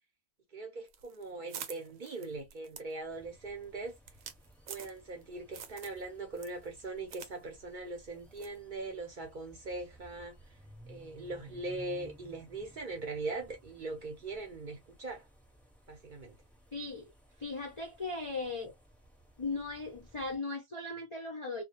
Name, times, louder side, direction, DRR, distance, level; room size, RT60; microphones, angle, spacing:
voice 1, 0.5-4.0 4.7-10.3 10.9-15.3 15.9-16.4, right 3 dB, 50° right, 0.7 m, -41 dB
sound 1, 0.9-5.2 5.5-6.0 6.3-7.3 7.6-7.7 8.4-8.6, right 8 dB, 80° right, 1.0 m, -47 dB
sound 2, 3.1-20.4, right 1 dB, ahead, 0.6 m, -58 dB
voice 2, 16.7-17.1 17.4-18.7 19.4-21.6, left 3 dB, 50° left, 0.3 m, -38 dB
2.2 x 2.2 x 2.8 m
omnidirectional pair, 1.4 m